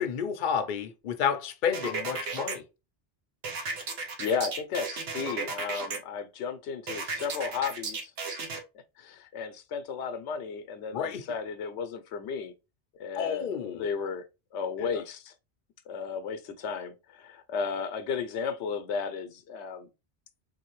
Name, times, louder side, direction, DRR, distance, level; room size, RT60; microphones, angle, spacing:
voice 1, 0.0-2.7 10.9-11.3 13.1-13.8 14.8-15.0, left 7 dB, 55° left, 0.7 m, -30 dB
sound 1, 1.7-2.6 3.4-6.0 6.9-8.6, right 4 dB, 70° right, 1.0 m, -34 dB
voice 2, 4.2-8.1 9.0-12.5 13.0-14.2 14.5-15.3 15.9-19.9, left 6 dB, 85° left, 0.9 m, -34 dB
3.7 x 2.7 x 2.9 m
omnidirectional pair, 1.1 m